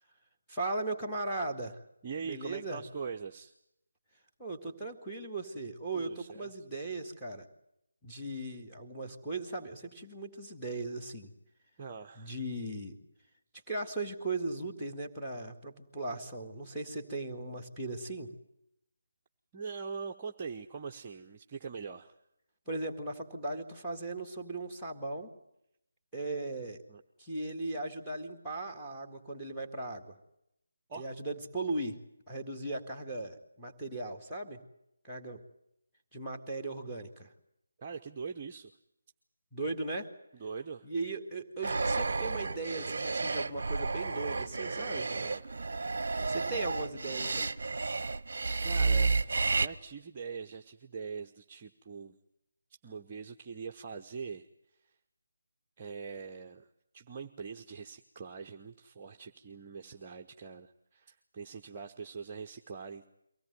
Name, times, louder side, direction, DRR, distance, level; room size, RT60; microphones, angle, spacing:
voice 1, 0.5-1.8 2.2-2.8 4.4-7.5 8.0-11.3 12.2-13.0 13.7-18.3 22.7-25.3 26.1-26.8 27.2-30.2 31.0-32.0 32.3-34.6 35.0-35.4 36.1-37.3 39.5-40.1 40.8-45.1 46.3-47.5, right 2 dB, ahead, 2 dB, 2.0 m, -38 dB
voice 2, 2.0-3.5 5.9-6.5 11.8-12.4 19.5-22.1 26.9-27.0 30.9-31.1 37.8-38.7 40.3-40.9 45.1-45.5 48.6-52.2 52.8-54.5 54.8-54.9 55.8-63.1, right 5 dB, 20° right, 2 dB, 0.8 m, -43 dB
sound 1, 41.6-49.7, right 3 dB, 45° right, 0.9 m, -31 dB
24.0 x 17.5 x 9.3 m, 0.81 s
figure-of-eight pair, 155°, 0 cm